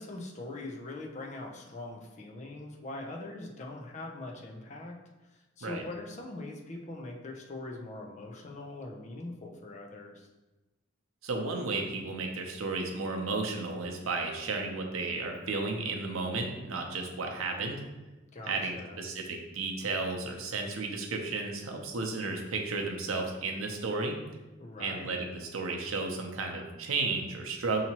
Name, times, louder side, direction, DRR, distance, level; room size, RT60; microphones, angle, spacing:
voice 1, 0.0-4.9 5.6-10.3 18.3-19.0 24.6-25.2, left 2 dB, 35° left, 1 dB, 0.5 m, -42 dB
voice 2, 11.2-17.8 18.5-24.2 24.8-27.8, right 3 dB, 90° right, 2 dB, 0.6 m, -33 dB
5.7 x 2.8 x 2.9 m, 1.1 s
head